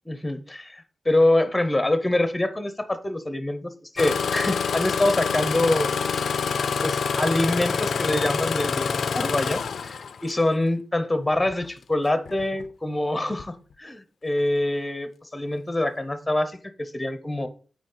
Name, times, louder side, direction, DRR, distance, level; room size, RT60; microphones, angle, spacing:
voice 1, 0.1-5.9 6.8-17.5, left 1 dB, 10° left, 10 dB, 0.6 m, -25 dB
Engine starting, 4.0-10.4 11.4-11.7 12.3-12.7 13.3-13.4, left 6 dB, 70° left, 0.4 m, -27 dB
7.9 x 4.4 x 3.8 m, 0.39 s
wide cardioid pair, 150°, 0 cm